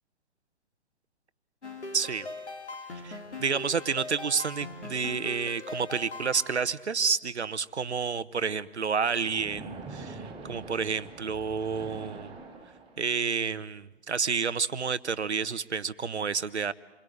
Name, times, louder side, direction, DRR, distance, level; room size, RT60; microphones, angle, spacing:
sound 1, 1.6-6.6, left 3 dB, 80° left, 4.6 m, -40 dB
voice 1, 1.9-2.3 2.9-12.3 13.0-16.7, right 5 dB, 80° right, 15 dB, 1.2 m, -30 dB
Splash splatter, 9.1-13.2, right 3 dB, 15° right, 6.7 m, -44 dB
28.5 x 22.0 x 9.4 m, 1.1 s
figure-of-eight pair, 130°, 34 cm